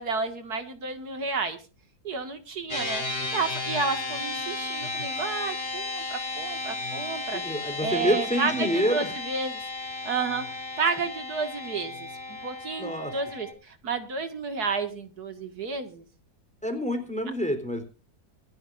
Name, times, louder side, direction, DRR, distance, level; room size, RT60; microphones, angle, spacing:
voice 1, 0.0-1.6 2.0-3.0 3.3-7.4 7.8-9.6 10.0-10.5 10.8-16.0, right 4 dB, 80° right, 7 dB, 2.5 m, -31 dB
sound 1, 2.7-13.5, left 2 dB, 35° left, 4.8 m, -34 dB
voice 2, 7.3-9.1 12.8-13.1 16.6-17.8, equal, 5° left, 6 dB, 3.7 m, -27 dB
26.0 x 11.5 x 2.6 m, 0.33 s
omnidirectional pair, 1.6 m